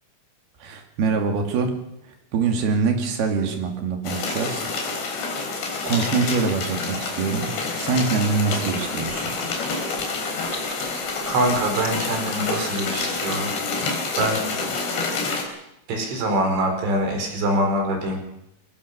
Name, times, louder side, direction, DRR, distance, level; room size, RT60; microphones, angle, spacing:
voice 1, 0.6-1.8 2.0-4.7 5.8-9.3, right 5 dB, 60° right, 4 dB, 4.2 m, -24 dB
sound 1, 4.0-15.4, left 4 dB, 65° left, 6.0 m, -28 dB
sound 2, 9.0-14.6, right 2 dB, 25° right, 3.5 m, -42 dB
voice 2, 11.3-13.5 14.2-14.4 15.9-18.3, right 1 dB, 80° right, 4 dB, 6.9 m, -24 dB
22.5 x 18.5 x 6.9 m, 0.84 s
omnidirectional pair, 5.4 m